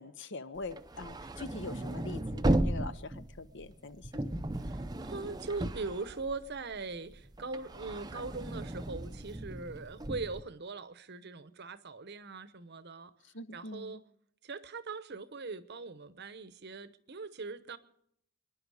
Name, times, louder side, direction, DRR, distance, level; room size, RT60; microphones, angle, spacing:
voice 1, 0.0-4.3 13.3-14.0, left 3 dB, 55° left, 0.8 m, -44 dB
sound 1, 0.6-6.7 7.1-10.4, right 1 dB, 20° right, 0.6 m, -35 dB
voice 2, 4.6-13.1 13.5-14.0 14.4-17.8, right 3 dB, 50° right, 0.9 m, -41 dB
24.5 x 11.0 x 4.9 m
head